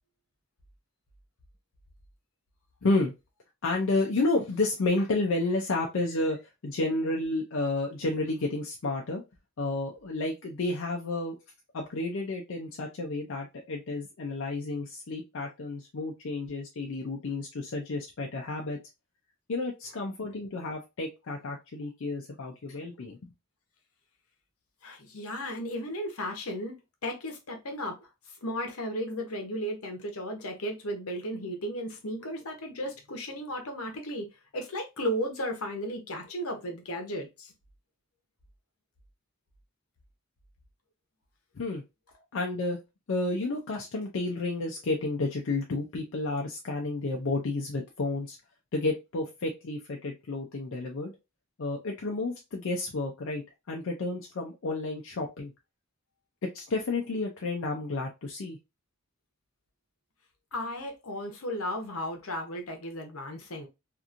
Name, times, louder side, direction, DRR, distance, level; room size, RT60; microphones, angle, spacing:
voice 1, 2.8-3.1 3.6-9.2 9.6-11.3 11.7-18.8 19.5-23.2 41.6-41.8 42.3-42.8 43.1-48.4 48.7-51.1 51.6-55.5 56.5-58.6, left 2 dB, 65° left, 0.5 m, -31 dB
voice 2, 24.8-26.8 27.0-28.1 28.4-34.3 34.5-37.5 60.5-63.7, equal, 80° left, 0.8 m, -35 dB
2.9 x 2.5 x 2.4 m
head